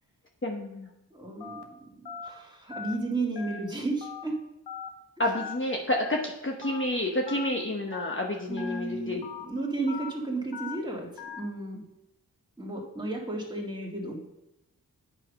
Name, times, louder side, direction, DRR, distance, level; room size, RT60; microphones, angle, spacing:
voice 1, 0.4-0.9 5.2-9.2, left 1 dB, 30° left, 0 dB, 1.0 m, -29 dB
voice 2, 1.1-1.9 2.2-4.4 8.5-11.1 11.4-11.8 12.6-14.2, right 2 dB, 10° right, -2 dB, 2.1 m, -33 dB
Telephone, 1.4-1.6 2.1-2.3 2.7-2.9 3.4-3.6 4.0-4.2 4.7-4.9 5.3-5.5 6.0-6.2 6.6-6.8 7.3-7.5 7.9-8.2 8.6-8.8 9.2-9.5 9.9-10.1 10.5-10.8 11.2-11.4, left 6 dB, 80° left, 1.0 m, -39 dB
8.4 x 4.9 x 5.3 m, 0.89 s
wide cardioid pair, 60°, 39 cm